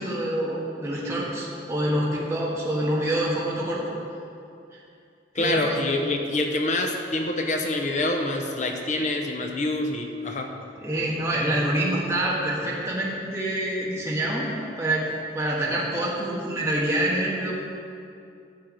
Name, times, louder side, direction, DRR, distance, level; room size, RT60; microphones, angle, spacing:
voice 1, 0.0-3.8 4.7-4.8 5.3-5.8 10.8-14.5 14.8-15.1 15.3-17.5, right 1 dB, 15° right, -6 dB, 1.5 m, -26 dB
voice 2, 5.3-10.5, left 2 dB, 40° left, 3 dB, 0.8 m, -26 dB
11.5 x 4.7 x 8.1 m, 2.5 s
head